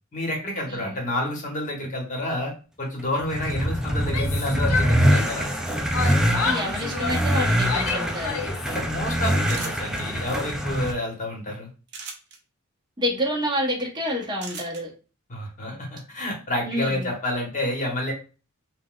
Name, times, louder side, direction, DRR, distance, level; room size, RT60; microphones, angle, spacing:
voice 1, 0.1-2.5 2.8-5.5 8.7-11.7 15.3-18.1, left 1 dB, 35° left, 0 dB, 0.9 m, -29 dB
voice 2, 0.7-1.0 6.3-8.4 13.0-14.9 16.6-17.1, equal, 20° right, 0 dB, 0.8 m, -28 dB
sound 1, 3.1-10.9, equal, 5° right, 0.3 m, -24 dB
Yell, 4.0-5.6 5.9-8.7, left 5 dB, 80° left, 0.6 m, -30 dB
sound 2, 9.5-10.0 11.9-12.4 14.4-14.8, right 5 dB, 55° right, 0.7 m, -37 dB
3.9 x 2.1 x 2.3 m, 0.34 s
head